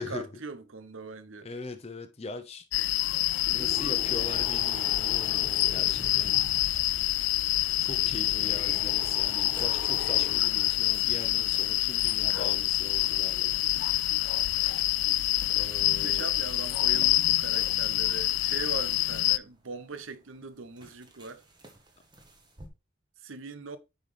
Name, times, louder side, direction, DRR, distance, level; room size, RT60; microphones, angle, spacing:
voice 1, 0.0-1.5 14.2-14.3 15.8-21.4 23.2-23.8, right 4 dB, 85° right, 0.8 m, -40 dB
voice 2, 1.4-2.6 3.5-6.4 7.8-13.6 15.5-16.3, left 3 dB, 30° left, 0.6 m, -41 dB
sound 1, 2.7-19.4, left 16 dB, 65° left, 0.3 m, -27 dB
sound 2, 3.4-10.4, equal, ahead, 1.6 m, -43 dB
sound 3, 9.0-22.7, right 2 dB, 20° right, 1.2 m, -54 dB
8.9 x 4.0 x 3.3 m
head